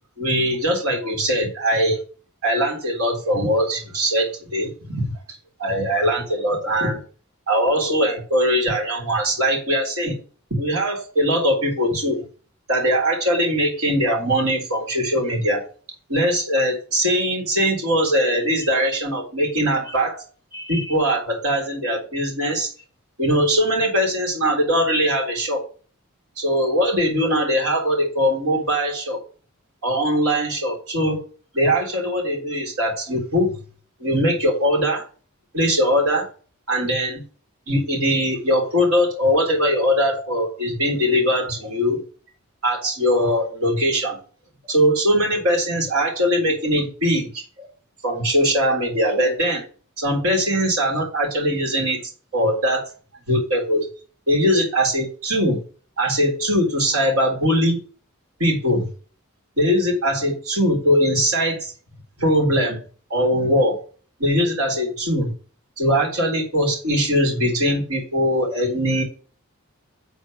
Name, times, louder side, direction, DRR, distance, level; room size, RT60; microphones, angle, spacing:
voice 1, 0.2-2.0 2.4-7.0 7.5-10.2 10.5-12.2 12.7-15.7 16.1-20.2 20.5-22.7 23.2-25.6 26.4-29.2 29.8-31.2 31.5-33.6 34.0-35.0 35.5-36.3 36.7-37.2 37.7-42.0 42.6-44.2 44.6-47.7 48.0-49.7 50.0-52.0 52.3-52.9 53.3-53.9 54.3-55.6 56.0-57.8 58.4-58.9 59.6-61.7 62.2-62.8 63.1-63.8 64.2-65.3 65.8-69.0, equal, 80° right, 1 dB, 3.8 m, -21 dB
8.2 x 4.5 x 6.3 m, 0.39 s
head